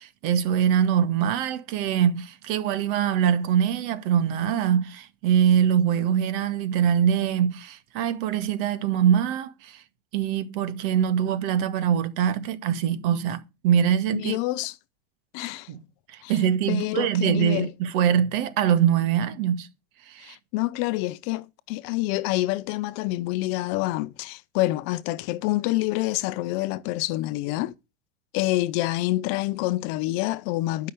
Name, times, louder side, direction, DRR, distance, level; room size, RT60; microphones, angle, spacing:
voice 1, 0.0-9.8 10.1-14.4 15.7-15.8 16.1-19.7 20.1-20.4, right 9 dB, 55° right, 2.0 m, -23 dB
voice 2, 14.1-14.8 15.3-15.7 16.2-16.3 16.7-17.7 20.2-27.7 28.3-30.9, left 18 dB, 40° left, 0.6 m, -27 dB
12.5 x 5.9 x 7.9 m
supercardioid pair, 155°, 33 cm